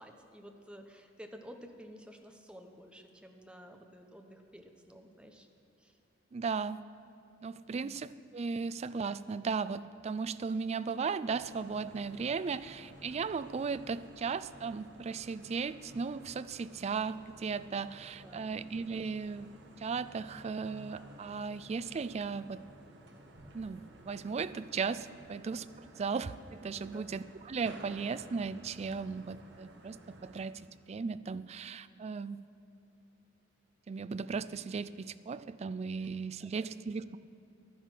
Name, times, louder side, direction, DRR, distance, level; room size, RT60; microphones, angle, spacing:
voice 1, 0.0-5.5 5.8-6.0 7.7-7.9 18.2-18.6 26.9-27.1 36.4-36.5, equal, 5° right, 4 dB, 0.9 m, -52 dB
voice 2, 6.3-6.8 7.4-19.5 19.8-22.6 23.5-26.3 26.6-32.4 33.9-37.2, right 5 dB, 35° right, 15 dB, 0.3 m, -36 dB
sound 1, 11.3-30.4, right 1 dB, 60° right, 1.3 m, -54 dB
12.0 x 10.0 x 5.9 m, 2.8 s
head